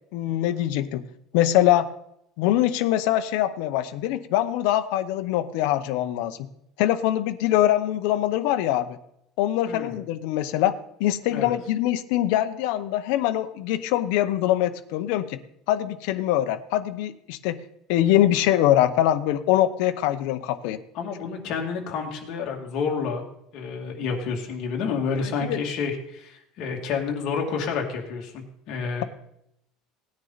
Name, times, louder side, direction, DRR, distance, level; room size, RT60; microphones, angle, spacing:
voice 1, 0.1-1.0 1.3-1.9 2.4-6.4 6.8-9.0 9.4-10.7 11.0-15.4 15.7-17.6 17.9-20.8 25.2-25.6, left 13 dB, 65° left, 10 dB, 0.8 m, -23 dB
voice 2, 20.9-23.2 23.5-29.0, left 5 dB, 45° left, 1 dB, 2.4 m, -29 dB
18.0 x 9.8 x 4.1 m, 0.77 s
cardioid pair, 170°, 0 cm